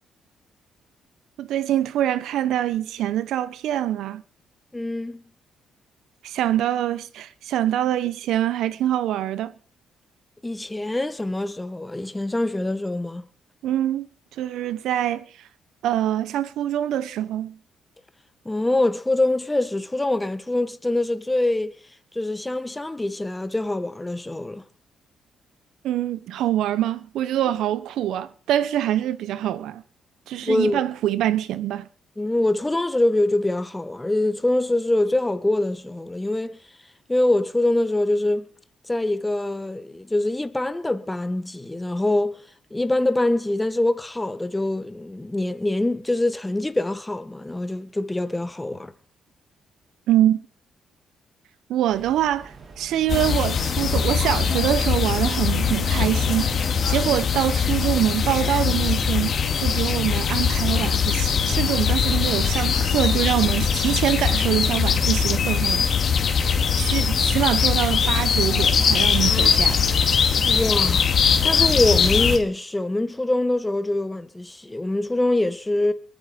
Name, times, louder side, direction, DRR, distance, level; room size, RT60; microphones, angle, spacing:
voice 1, 1.4-4.2 6.2-9.5 13.6-14.1 14.4-15.2 15.8-17.6 25.8-29.8 30.3-31.9 50.1-50.4 51.7-66.2 66.8-69.8, right 12 dB, 80° right, 1.1 m, -24 dB
voice 2, 4.7-5.2 10.4-13.2 18.4-21.8 22.1-24.6 30.4-30.8 32.2-36.6 37.1-38.5 38.9-42.4 42.7-48.9 70.4-71.1 71.4-75.9, left 1 dB, 10° left, 1.6 m, -24 dB
sound 1, 51.9-57.4, right 4 dB, 50° right, 3.7 m, -41 dB
sound 2, 53.1-72.4, left 6 dB, 55° left, 2.8 m, -21 dB
22.5 x 9.5 x 5.3 m
cardioid pair, 90°, 0 cm